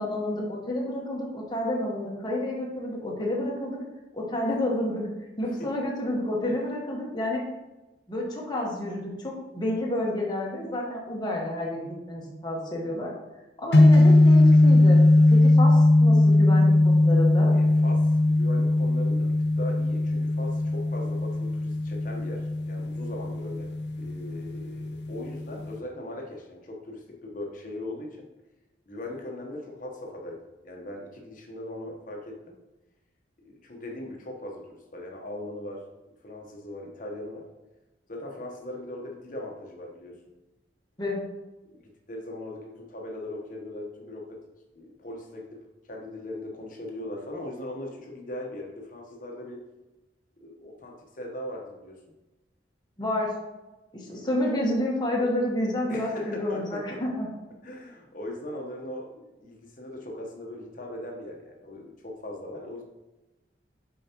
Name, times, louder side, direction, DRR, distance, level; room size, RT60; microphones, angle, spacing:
voice 1, 0.0-3.8 4.1-5.0 5.4-7.4 8.1-13.1 13.6-15.0 15.3-17.5 41.0-41.2 53.0-53.3 53.9-57.3, left 1 dB, 25° left, -3 dB, 1.2 m, -29 dB
sound 1, 13.7-25.8, left 2 dB, 75° left, 0.6 m, -20 dB
voice 2, 17.5-23.7 24.0-28.3 28.9-32.6 33.4-35.9 36.2-37.5 38.1-40.2 41.6-44.4 44.7-49.6 50.4-52.0 54.1-54.3 55.9-57.0 57.6-62.8, left 1 dB, 50° left, 1 dB, 1.0 m, -39 dB
6.9 x 4.8 x 2.9 m, 1.1 s
head